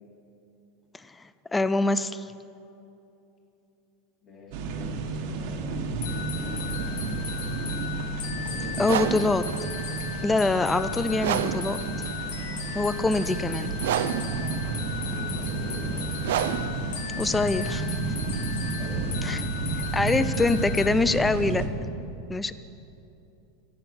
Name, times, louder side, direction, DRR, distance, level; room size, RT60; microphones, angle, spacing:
voice 1, 1.0-2.3 8.8-9.4 10.2-11.8 12.7-13.8 17.2-18.0 19.2-19.4 19.9-21.7 22.3-22.5, left 3 dB, 5° left, 14 dB, 0.3 m, -25 dB
voice 2, 4.2-7.6 8.4-9.3 14.6-16.1 16.6-16.8 18.8-19.2 21.8-21.9, left 2 dB, 25° left, -2 dB, 2.9 m, -45 dB
sound 1, 4.5-21.7, right 3 dB, 45° right, 1.4 m, -31 dB
sound 2, 6.0-20.9, left 8 dB, 90° left, 1.6 m, -37 dB
sound 3, 8.7-18.6, right 10 dB, 80° right, 0.6 m, -32 dB
24.5 x 8.5 x 6.1 m, 2.8 s
supercardioid pair, 180°, 0 cm